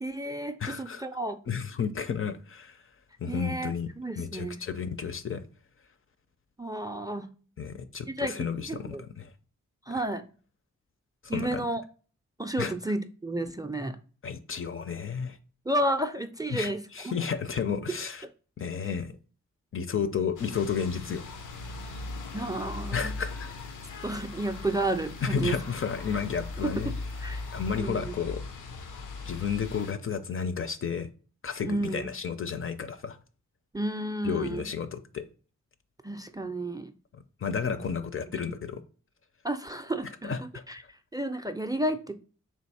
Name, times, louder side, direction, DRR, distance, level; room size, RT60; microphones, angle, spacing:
voice 1, 0.0-1.4 3.3-4.6 6.6-7.3 8.1-9.0 9.9-10.3 11.3-11.8 12.4-14.0 15.6-17.1 17.9-18.0 18.2-18.3 22.3-23.2 24.0-25.6 26.6-26.9 27.2-27.4 27.7-28.4 31.6-32.1 33.7-34.7 36.0-36.9 37.7-37.8 38.4-38.6 39.4-42.1, right 1 dB, 10° right, 0.4 m, -32 dB
voice 2, 0.6-1.0 1.5-2.8 3.2-3.9 4.2-5.4 7.6-9.3 11.2-11.7 12.6-12.7 14.2-15.4 16.5-18.2 18.6-19.1 19.7-21.2 22.9-23.5 25.2-26.9 27.5-28.4 29.3-31.1 31.4-33.2 34.2-35.2 37.4-38.8 40.3-40.6, left 6 dB, 45° left, 0.5 m, -32 dB
sound 1, 20.4-29.9, left 3 dB, 85° left, 0.6 m, -39 dB
3.4 x 2.7 x 4.1 m
cardioid pair, 50°, 30 cm